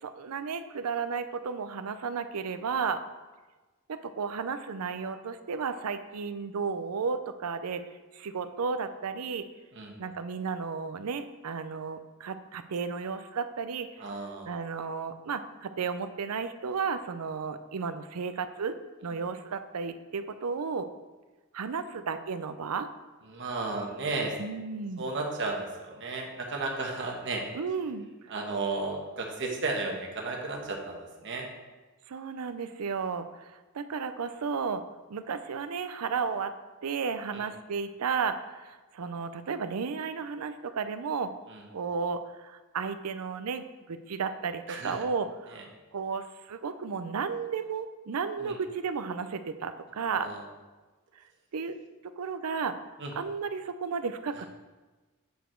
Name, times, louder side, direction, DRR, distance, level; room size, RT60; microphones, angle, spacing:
voice 1, 0.0-3.0 3.9-7.8 8.1-9.5 10.0-14.0 14.5-18.8 19.0-20.9 21.5-22.9 24.4-25.1 27.5-28.1 32.1-34.8 35.1-36.5 36.8-41.3 41.7-50.3 51.2-51.3 51.5-51.8 52.0-52.8 53.1-54.5, right 5 dB, 75° right, 11 dB, 0.5 m, -33 dB
voice 2, 14.0-14.5 23.3-24.4 25.0-27.4 28.3-31.5 37.3-37.4 41.5-41.6 44.7-45.0 45.5-45.6 48.4-48.6 50.0-50.4 53.0-53.1, right 3 dB, 55° right, 0 dB, 1.3 m, -34 dB
8.1 x 5.1 x 4.5 m, 1.2 s
head